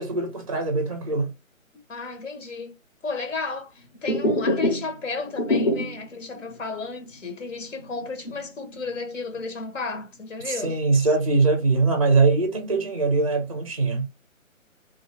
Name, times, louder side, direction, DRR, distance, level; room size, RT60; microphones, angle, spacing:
voice 1, 0.0-1.3 10.4-14.1, right 3 dB, 25° right, 0.5 m, -22 dB
voice 2, 1.7-2.8 3.0-10.8, left 4 dB, 65° left, 0.9 m, -33 dB
sound 1, 3.9-6.1 6.5-6.6 7.0-7.1 7.6-9.0 9.3-10.0, left 1 dB, 25° left, 0.5 m, -26 dB
2.7 x 2.3 x 3.2 m
figure-of-eight pair, 145°, 41 cm